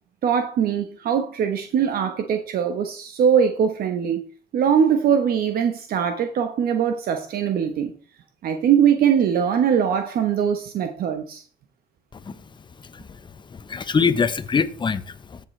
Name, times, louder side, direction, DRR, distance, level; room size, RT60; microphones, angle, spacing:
voice 1, 0.2-4.2 4.5-7.9 8.4-11.4, right 8 dB, 60° right, 1.1 m, -21 dB
voice 2, 13.5-15.4, left 5 dB, 25° left, 0.9 m, -23 dB
15.5 x 6.9 x 3.3 m
cardioid pair, 110°, 17 cm